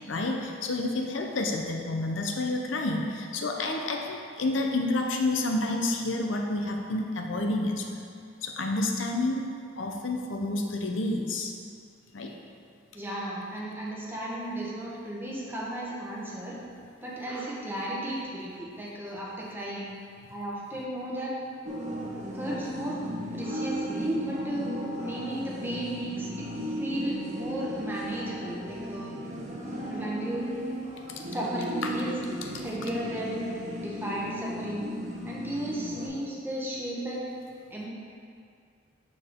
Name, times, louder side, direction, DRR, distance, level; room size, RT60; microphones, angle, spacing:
voice 1, 0.1-7.9 8.4-11.5 12.1-12.4 31.2-31.3 31.8-31.9 32.5-32.6, left 2 dB, 90° left, 2 dB, 0.7 m, -29 dB
voice 2, 12.9-16.6 17.0-19.9 20.3-21.4 22.3-23.0 23.3-24.7 25.0-26.5 26.8-29.1 29.9-30.5 31.3-32.1 32.6-33.5 33.8-34.9 35.2-37.3 37.7-37.9, right 1 dB, 10° right, -6 dB, 1.3 m, -34 dB
sound 1, 21.6-36.1, equal, 40° right, 1.0 m, -36 dB
6.7 x 6.5 x 3.7 m, 2.2 s
head